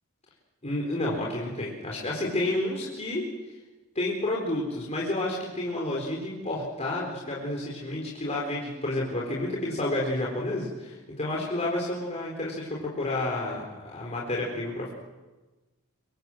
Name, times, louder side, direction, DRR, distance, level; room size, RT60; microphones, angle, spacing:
voice 1, 0.6-3.5 3.9-14.9, left 1 dB, 30° left, -3 dB, 4.3 m, -30 dB
26.0 x 24.0 x 7.8 m, 1.2 s
head